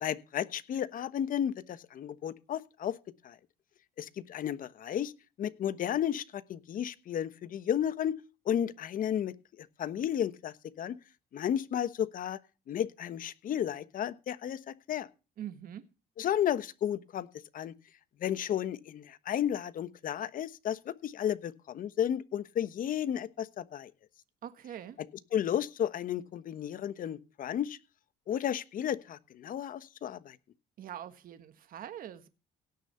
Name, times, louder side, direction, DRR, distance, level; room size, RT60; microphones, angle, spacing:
voice 1, 0.0-2.9 3.2-3.4 4.0-5.1 5.4-8.2 8.4-11.0 11.3-12.4 12.7-15.1 16.2-17.3 17.5-17.7 18.2-23.9 25.3-27.8 28.3-30.4, left 10 dB, 55° left, 1.2 m, -33 dB
voice 2, 15.4-15.9 24.4-25.0 30.8-32.3, right 10 dB, 60° right, 1.5 m, -43 dB
17.5 x 6.7 x 5.7 m
cardioid pair, 110°, 17 cm